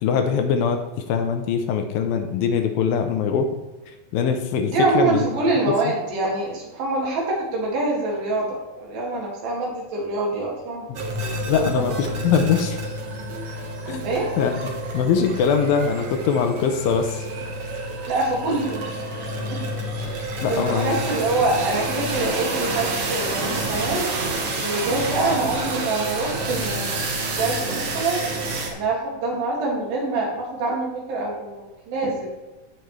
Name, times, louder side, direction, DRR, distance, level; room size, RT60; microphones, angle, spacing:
voice 1, 0.0-0.8 1.1-3.5 4.1-5.3 5.7-5.9 11.5-12.8 13.9-14.0 14.4-14.5 14.9-17.3 20.4-20.9, left 6 dB, 80° left, 6 dB, 2.5 m, -22 dB
voice 2, 4.7-10.9 11.6-12.0 14.0-14.3 18.1-19.1 19.5-19.6 19.9-24.1 24.6-27.1 27.4-28.3 28.7-32.3, right 2 dB, 80° right, -3 dB, 4.0 m, -25 dB
sound 1, 11.0-28.7, right 2 dB, 55° right, 1.7 m, -28 dB
15.5 x 5.2 x 3.2 m, 1.1 s
omnidirectional pair, 4.1 m